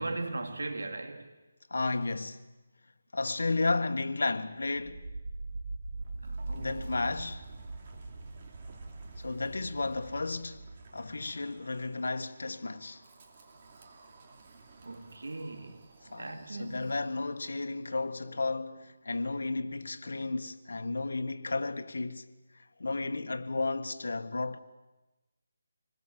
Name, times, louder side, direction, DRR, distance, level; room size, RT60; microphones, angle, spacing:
voice 1, 0.0-1.3 6.2-6.9 14.8-15.9 16.1-17.0, right 2 dB, 90° right, 3.3 m, -38 dB
voice 2, 1.7-2.4 3.1-5.1 6.5-7.5 9.2-10.6 10.9-13.0 16.1-24.6, left 3 dB, 80° left, 1.6 m, -33 dB
Wind, 4.5-17.5, right 3 dB, 30° right, 2.8 m, -44 dB
26.0 x 20.5 x 7.5 m
hypercardioid pair, 170°, 0 cm